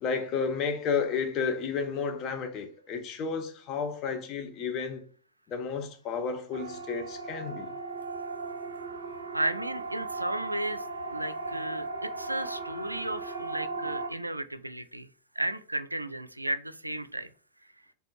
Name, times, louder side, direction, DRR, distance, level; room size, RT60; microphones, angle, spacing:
voice 1, 0.0-5.0 5.5-7.7, left 5 dB, 35° left, 0.9 m, -32 dB
Siren, 6.5-14.1, right 3 dB, 65° right, 0.7 m, -37 dB
voice 2, 9.3-10.8 11.1-15.1 15.4-17.3, right 1 dB, 85° right, 0.3 m, -34 dB
4.2 x 3.4 x 3.2 m
figure-of-eight pair, 90°, 0 cm